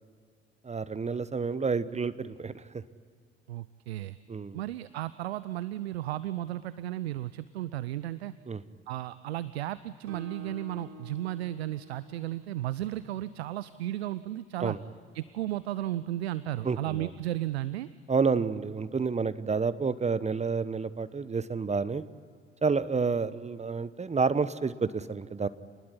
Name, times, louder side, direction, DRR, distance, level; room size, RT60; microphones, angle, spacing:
voice 1, 0.6-2.8 4.3-4.6 8.5-8.6 14.6-14.8 16.6-17.1 18.1-22.0 22.6-25.5, right 5 dB, 20° right, 15 dB, 1.0 m, -29 dB
voice 2, 3.5-4.2 4.5-8.3 8.9-14.8 15.1-17.9, right 14 dB, 80° right, 16 dB, 0.6 m, -34 dB
Guitar, 10.1-13.7, right 1 dB, 55° right, 4.7 m, -50 dB
28.0 x 20.5 x 9.8 m, 2.1 s
figure-of-eight pair, 55°, 31 cm